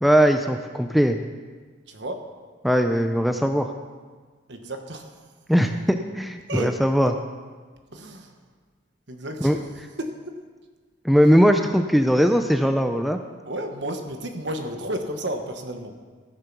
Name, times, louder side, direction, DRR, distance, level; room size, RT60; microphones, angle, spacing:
voice 1, 0.0-1.2 2.6-3.7 5.5-7.1 9.4-9.6 11.0-13.2, equal, ahead, 6 dB, 0.4 m, -20 dB
voice 2, 1.9-2.3 4.5-5.1 6.5-6.8 7.9-8.4 9.1-9.6 10.0-10.4 11.2-11.3 13.4-16.0, right 1 dB, 70° right, 5 dB, 1.2 m, -32 dB
15.5 x 6.7 x 6.0 m, 1.5 s
head